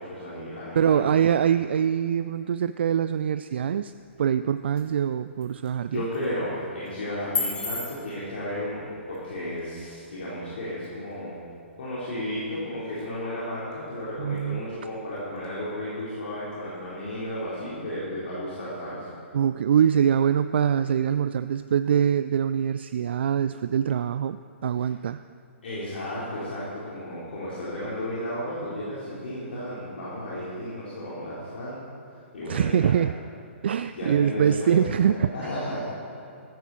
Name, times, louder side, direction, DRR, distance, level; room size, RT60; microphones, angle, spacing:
voice 1, 0.0-1.2 5.9-11.5 11.8-19.1 24.8-24.9 25.6-31.8 32.3-33.0 33.9-35.9, left 1 dB, 60° left, -9 dB, 4.2 m, -33 dB
voice 2, 0.7-3.9 4.2-6.0 14.2-14.6 19.3-24.4 24.6-25.2 32.5-33.1 33.6-35.3, right 8 dB, 55° right, 12 dB, 0.4 m, -23 dB
sound 1, 3.9-17.9, left 4 dB, 15° left, 2.3 m, -41 dB
15.0 x 15.0 x 4.4 m, 2.6 s
figure-of-eight pair, 125°, 7 cm